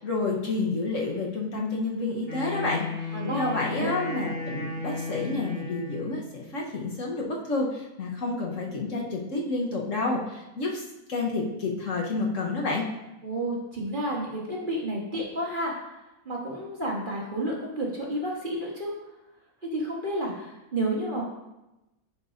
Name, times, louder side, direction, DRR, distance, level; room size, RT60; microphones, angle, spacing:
voice 1, 0.0-10.8 11.1-12.9, left 3 dB, 60° left, -2 dB, 1.3 m, -29 dB
Wind instrument woodwind instrument, 2.2-6.2, left 3 dB, 30° left, 2.1 m, -34 dB
voice 2, 3.1-4.0 13.2-15.7 16.2-18.9 19.6-21.2, right 1 dB, 35° right, -3 dB, 1.3 m, -31 dB
10.5 x 5.3 x 2.5 m, 0.95 s
omnidirectional pair, 1.6 m